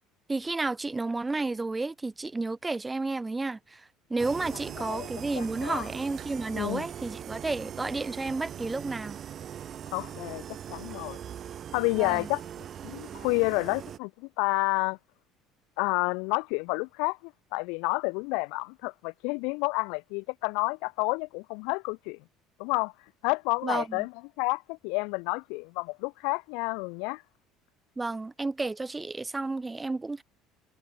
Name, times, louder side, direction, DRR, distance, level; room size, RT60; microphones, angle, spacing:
voice 1, 0.3-9.2 12.0-12.3 23.6-24.1 28.0-30.2, right 3 dB, 10° right, 2.0 m, -32 dB
sound 1, 4.2-14.0, right 9 dB, 35° right, 3.6 m, -41 dB
voice 2, 5.3-5.9 6.5-6.9 9.9-11.2 11.7-12.4 12.8-15.0 15.8-22.2 22.6-22.9 23.2-24.1 24.4-27.2, left 32 dB, 80° left, 1.1 m, -30 dB
cardioid pair, 140°, 0 cm